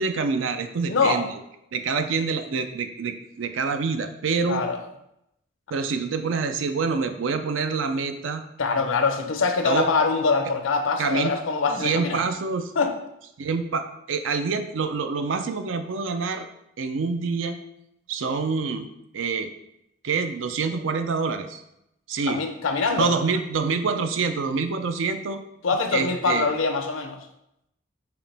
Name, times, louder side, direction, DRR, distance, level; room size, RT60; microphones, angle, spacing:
voice 1, 0.0-1.4 1.7-4.6 5.7-8.4 9.6-9.9 11.0-11.3 11.8-12.7 13.4-16.5 16.8-17.6 18.1-18.9 19.1-19.5 20.0-21.6 22.1-22.4 22.9-25.4 25.9-26.5, right 4 dB, 80° right, 8 dB, 0.4 m, -26 dB
voice 2, 0.9-1.2 4.5-4.8 8.6-12.2 12.8-12.9 22.3-23.1 25.6-27.2, left 4 dB, 90° left, 6 dB, 0.6 m, -23 dB
4.9 x 2.9 x 3.3 m, 0.82 s
head